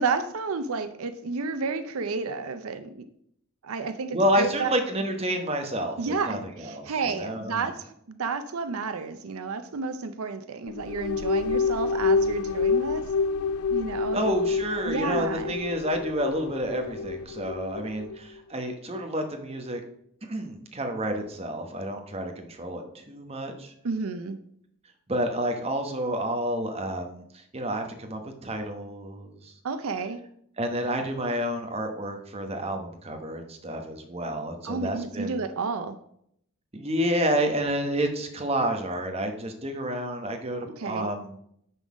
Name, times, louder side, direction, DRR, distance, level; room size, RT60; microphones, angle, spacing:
voice 1, 0.0-3.1 3.6-4.7 6.0-13.1 13.7-14.2 14.9-15.6 23.8-24.4 29.6-30.2 34.6-36.0 40.8-41.1, right 4 dB, 75° right, 10 dB, 0.6 m, -31 dB
voice 2, 4.1-7.7 14.1-19.8 20.2-23.7 25.1-29.5 30.6-35.4 36.7-41.4, equal, 30° right, 5 dB, 1.0 m, -29 dB
sound 1, 10.7-18.2, left 4 dB, 80° left, 0.3 m, -28 dB
9.6 x 3.9 x 6.2 m, 0.72 s
head